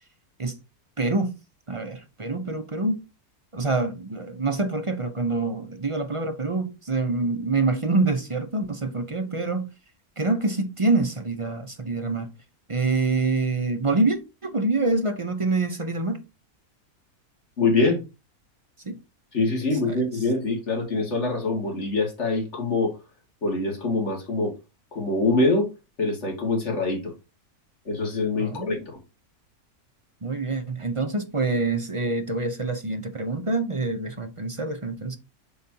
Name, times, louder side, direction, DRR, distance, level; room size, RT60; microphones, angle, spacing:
voice 1, 1.0-1.3 1.7-3.0 3.5-9.7 10.2-12.3 12.7-16.2 18.8-19.0 19.9-20.0 28.4-28.8 30.2-35.2, right 3 dB, 30° right, 0.6 m, -26 dB
voice 2, 17.6-18.0 19.3-22.9 23.4-24.5 24.9-25.7 26.0-27.1 27.9-28.9, left 2 dB, 50° left, 2.5 m, -24 dB
8.2 x 5.6 x 2.8 m
omnidirectional pair, 1.6 m